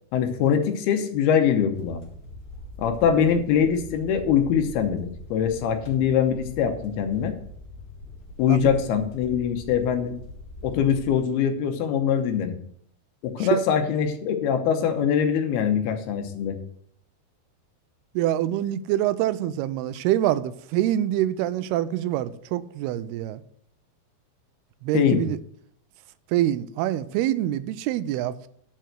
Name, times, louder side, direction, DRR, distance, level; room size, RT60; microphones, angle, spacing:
voice 1, 0.1-2.0 2.8-7.3 8.4-10.2 10.6-12.6 13.2-16.6 24.9-25.2, left 8 dB, 80° left, 2.9 m, -23 dB
sound 1, 1.7-11.2, left 1 dB, 60° left, 4.1 m, -42 dB
voice 2, 18.2-23.4 24.8-25.4 26.3-28.5, right 13 dB, 85° right, 2.5 m, -25 dB
11.5 x 4.5 x 7.6 m
omnidirectional pair, 4.6 m